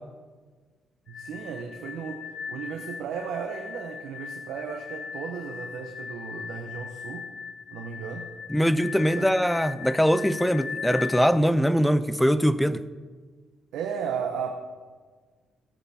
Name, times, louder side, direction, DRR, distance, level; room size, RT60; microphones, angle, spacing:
sound 1, 1.1-11.3, left 6 dB, 55° left, 1.0 m, -39 dB
voice 1, 1.1-7.3 7.7-8.3 9.2-9.3 13.7-14.5, right 6 dB, 85° right, 3 dB, 1.0 m, -35 dB
voice 2, 8.5-12.8, equal, 5° left, 14 dB, 0.6 m, -22 dB
18.0 x 7.9 x 4.3 m, 1.5 s
cardioid pair, 90°, 0 cm